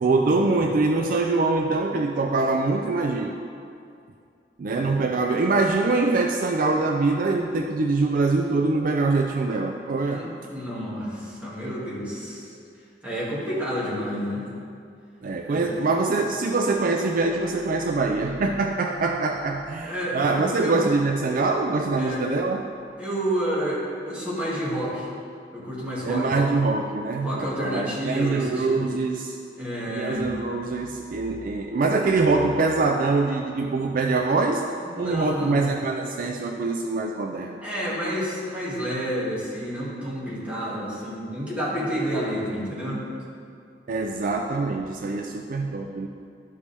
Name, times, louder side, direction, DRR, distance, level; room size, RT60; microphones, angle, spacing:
voice 1, 0.0-3.3 4.6-10.3 15.2-22.6 26.0-29.4 30.0-34.7 35.0-37.6 43.9-46.1, right 3 dB, 50° right, 3 dB, 0.4 m, -24 dB
voice 2, 10.0-12.6 13.0-14.5 15.4-15.7 19.8-20.8 22.0-22.2 23.0-25.1 25.5-26.6 27.2-28.8 29.6-30.3 34.8-35.7 37.6-43.0, equal, 10° right, -8 dB, 2.0 m, -30 dB
12.5 x 5.2 x 3.3 m, 2.4 s
head